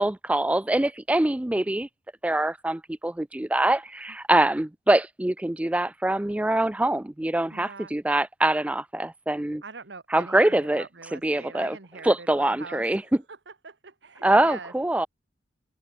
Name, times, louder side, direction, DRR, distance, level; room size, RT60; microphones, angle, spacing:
voice 1, 0.0-1.9 2.2-9.6 10.1-10.8 11.1-11.8 12.0-13.0 14.2-15.1, right 1 dB, 5° right, 0.3 m, -24 dB
voice 2, 7.5-8.0 9.6-13.1 13.5-14.7, right 4 dB, 75° right, 1.5 m, -43 dB
head